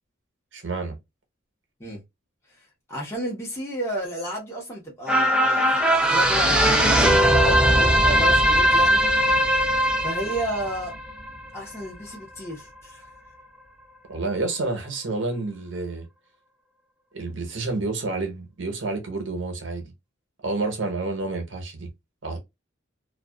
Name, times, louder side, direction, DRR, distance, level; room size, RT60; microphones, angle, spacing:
voice 1, 0.5-1.0 14.1-16.0 17.1-19.9 20.4-21.9 22.2-22.4, right 3 dB, 75° right, 0.9 m, -29 dB
voice 2, 2.9-9.0 10.0-11.0 11.5-13.0, equal, 15° left, 1.0 m, -32 dB
sound 1, 5.1-11.7 12.1-12.2, equal, 5° right, 0.4 m, -19 dB
2.4 x 2.3 x 2.3 m
head